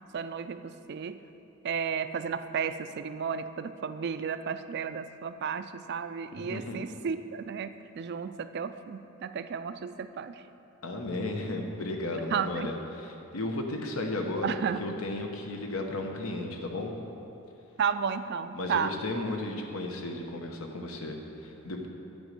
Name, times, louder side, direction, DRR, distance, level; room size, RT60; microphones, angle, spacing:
voice 1, 0.1-1.2 1.6-7.7 8.0-10.4 12.3-12.7 14.4-14.8 17.8-19.0, right 6 dB, 50° right, 11 dB, 0.4 m, -33 dB
voice 2, 6.4-6.8 10.8-12.8 13.3-14.5 14.8-17.0 18.5-21.9, left 2 dB, 80° left, 2 dB, 1.0 m, -34 dB
9.8 x 5.2 x 7.5 m, 2.9 s
head